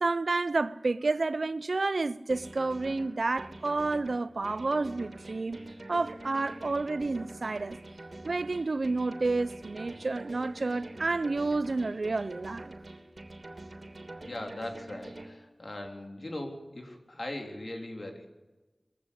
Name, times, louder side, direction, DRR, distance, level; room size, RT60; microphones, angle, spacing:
voice 1, 0.0-5.6 5.9-7.8 8.2-12.7, right 3 dB, 85° right, 0.7 m, -30 dB
sound 1, 2.3-15.3, right 2 dB, 65° right, 3.1 m, -45 dB
voice 2, 14.2-18.3, left 1 dB, 60° left, 3.8 m, -40 dB
22.0 x 15.5 x 8.4 m
wide cardioid pair, 55°, 0 cm